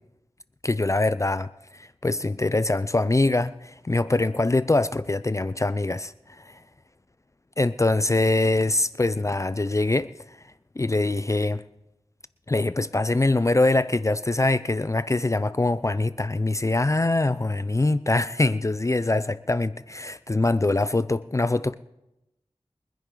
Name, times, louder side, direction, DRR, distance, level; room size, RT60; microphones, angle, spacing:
voice 1, 0.6-1.5 1.8-6.1 7.6-10.1 10.8-11.6 12.5-21.7, left 2 dB, 30° left, 0.5 m, -23 dB
24.0 x 10.0 x 3.9 m
wide cardioid pair, 60°, 10 cm